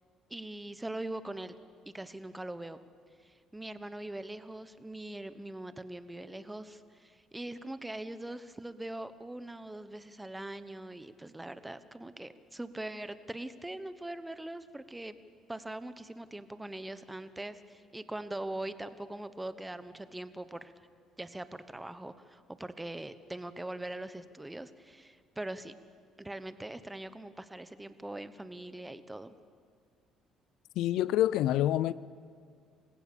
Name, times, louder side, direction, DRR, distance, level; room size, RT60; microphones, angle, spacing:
voice 1, 0.3-1.5 1.9-2.8 3.2-15.2 15.5-20.7 21.2-25.7 26.2-29.4, right 1 dB, 10° right, 1.1 m, -42 dB
voice 2, 30.8-31.9, left 13 dB, 80° left, 0.5 m, -27 dB
27.5 x 16.0 x 7.1 m
cardioid pair, 90°, 0 cm